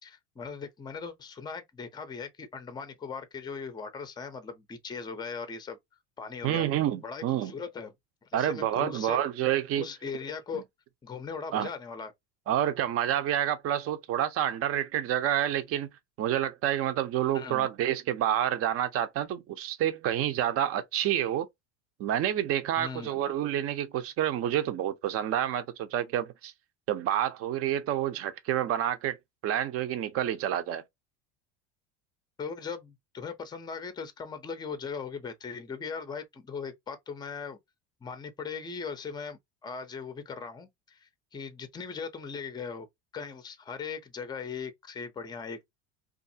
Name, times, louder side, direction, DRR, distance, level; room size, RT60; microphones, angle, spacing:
voice 1, 0.0-5.8 6.2-6.7 7.0-7.9 8.3-9.2 9.8-10.6 11.0-12.1 17.3-17.7 22.8-23.2 32.4-37.6 38.0-42.9 43.1-45.7, left 5 dB, 15° left, 0.5 m, -39 dB
voice 2, 6.4-7.5 8.3-9.8 11.5-11.7 12.5-15.9 16.2-21.5 22.0-26.5 26.9-29.2 29.4-30.8, right 11 dB, 45° right, 0.6 m, -28 dB
2.6 x 2.4 x 2.6 m
supercardioid pair, 100°, 32 cm